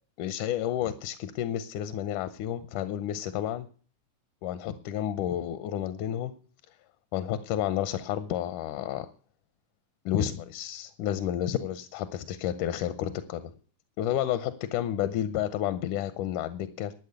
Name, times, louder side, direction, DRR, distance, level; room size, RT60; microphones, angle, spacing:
voice 1, 0.2-3.7 4.4-6.3 7.1-9.1 10.1-13.5 14.0-16.9, left 11 dB, 85° left, 12 dB, 2.3 m, -31 dB
12.5 x 8.9 x 8.0 m, 0.43 s
omnidirectional pair, 3.5 m